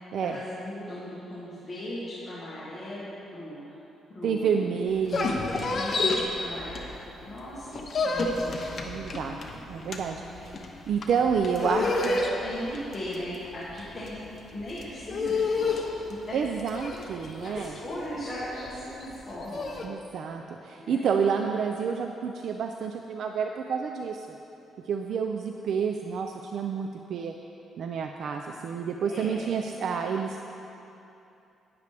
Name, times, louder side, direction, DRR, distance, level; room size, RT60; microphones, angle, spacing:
voice 1, 0.2-3.7 4.1-4.8 5.3-8.9 9.7-10.4 11.7-16.4 17.0-17.1 17.4-19.9 20.8-21.1 29.0-29.5, left 1 dB, 20° left, -9 dB, 1.8 m, -38 dB
voice 2, 4.2-5.4 8.2-8.4 8.8-9.4 9.7-10.6 10.9-11.8 16.3-17.8 19.8-24.4 24.9-27.3 27.8-30.4, right 6 dB, 60° right, 4 dB, 0.4 m, -29 dB
sound 1, 4.9-7.2 7.5-19.9, left 3 dB, 35° left, 0.8 m, -30 dB
11.5 x 9.6 x 3.4 m, 2.9 s
cardioid pair, 160°, 0 cm